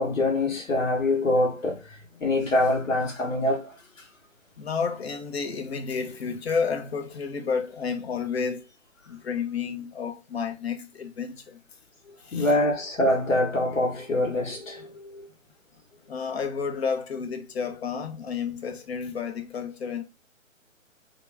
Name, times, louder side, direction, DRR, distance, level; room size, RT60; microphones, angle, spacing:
voice 1, 0.0-3.7 12.3-15.3, left 1 dB, 70° left, 1.4 m, -25 dB
voice 2, 4.6-8.7 9.1-11.6 12.2-12.5 16.1-20.0, left 5 dB, 50° left, 0.8 m, -31 dB
2.9 x 2.4 x 3.4 m
figure-of-eight pair, 140°, 41 cm